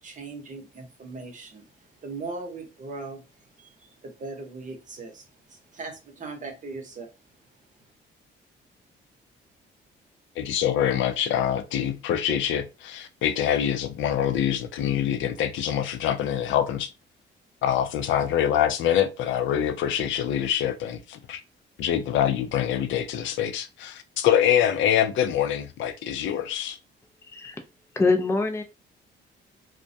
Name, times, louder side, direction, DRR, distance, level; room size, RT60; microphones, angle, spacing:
voice 1, 0.0-3.2 3.6-7.1, right 3 dB, 40° right, 0.8 m, -39 dB
voice 2, 10.4-16.9 17.6-21.4 21.8-26.8, left 10 dB, 75° left, 0.4 m, -25 dB
voice 3, 27.3-27.6 27.9-28.6, left 3 dB, 15° left, 0.4 m, -23 dB
2.2 x 2.1 x 2.6 m
cardioid pair, 90°, 20 cm